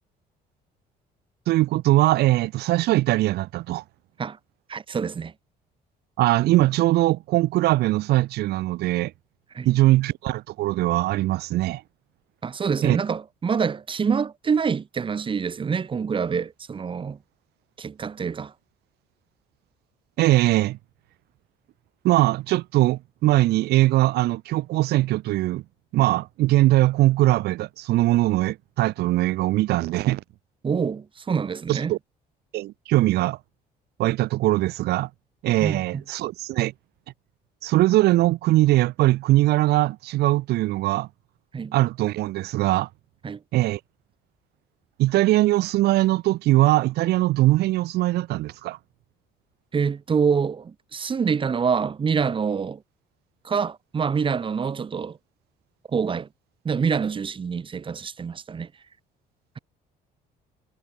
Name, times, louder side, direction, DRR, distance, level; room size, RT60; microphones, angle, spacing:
voice 1, 1.5-3.8 6.2-9.1 9.7-11.8 12.8-13.0 20.2-20.8 22.0-25.6 25.9-30.2 31.7-32.0 32.5-33.4 34.0-35.1 35.4-36.7 37.6-41.1 41.7-42.9 43.5-43.8 45.0-48.8, right 17 dB, 75° right, 0.7 m, -21 dB
voice 2, 4.7-5.3 9.5-9.7 12.4-17.2 17.8-18.5 30.6-31.9 35.6-36.0 41.5-41.7 43.2-43.4 49.7-52.8 53.4-55.2 55.9-56.3 56.6-58.7, right 6 dB, 30° right, 1.2 m, -26 dB
cardioid pair, 110°, 17 cm